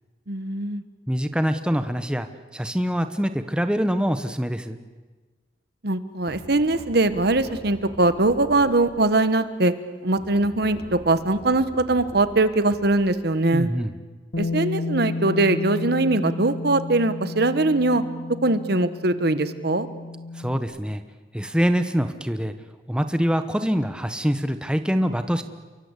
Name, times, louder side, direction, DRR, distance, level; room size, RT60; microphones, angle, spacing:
voice 1, 0.3-0.8 5.8-9.7 10.0-13.7 14.4-18.0 18.4-19.9, right 2 dB, 60° right, 12 dB, 1.4 m, -21 dB
voice 2, 1.1-2.3 2.5-4.8 13.5-13.9 20.3-21.0 21.3-22.5 22.9-25.4, equal, 5° right, 9 dB, 1.1 m, -24 dB
sound 1, 6.3-9.2 10.2-13.5, equal, 45° left, 4.3 m, -43 dB
Bass guitar, 14.3-20.6, left 3 dB, 70° left, 2.3 m, -32 dB
29.5 x 23.0 x 8.3 m, 1.3 s
head